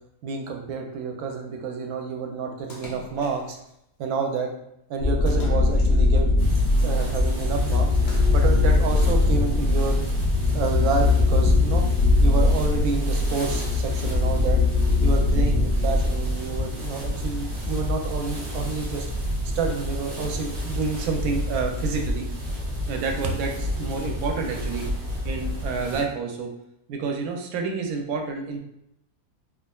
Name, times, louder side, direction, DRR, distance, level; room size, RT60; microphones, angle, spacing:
voice 1, 0.2-3.6 4.0-4.5 4.9-6.4 6.8-7.9 8.3-10.0 10.5-11.9 12.2-14.6 15.0-19.1 19.5-22.3 22.9-24.9 25.2-26.5 26.9-28.6, right 4 dB, 90° right, 3 dB, 1.1 m, -29 dB
Splash splatter, 2.7-3.7 5.3-6.3 7.9-8.8, left 1 dB, 85° left, 0.4 m, -43 dB
sound 1, 5.0-16.7, left 3 dB, 55° left, 0.7 m, -21 dB
sound 2, 6.4-26.0, equal, 55° right, 1.0 m, -28 dB
3.5 x 2.3 x 2.2 m, 0.78 s
omnidirectional pair, 1.5 m